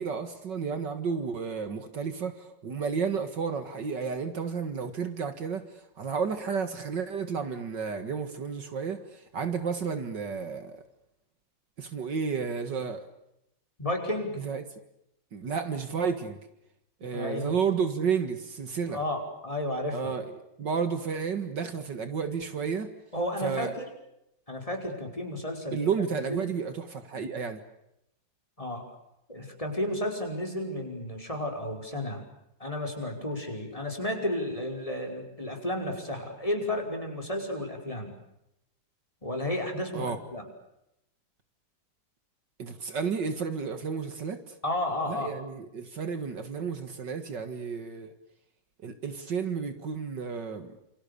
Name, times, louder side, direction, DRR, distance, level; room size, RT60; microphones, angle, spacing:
voice 1, 0.0-5.6 6.0-10.8 11.8-13.1 14.4-14.6 15.3-16.4 17.0-19.0 19.9-22.9 23.4-23.8 25.7-27.6 39.9-40.2 42.6-44.5 45.1-48.1 48.8-50.7, right 6 dB, 65° right, 9 dB, 2.4 m, -32 dB
voice 2, 13.8-14.4 17.1-17.5 18.9-20.1 23.1-23.9 24.5-25.8 26.3-26.4 28.6-28.9 29.3-32.2 32.6-38.2 39.2-40.4 44.6-45.3, left 1 dB, 15° left, 4 dB, 5.6 m, -32 dB
28.5 x 26.5 x 6.9 m, 0.83 s
omnidirectional pair, 2.1 m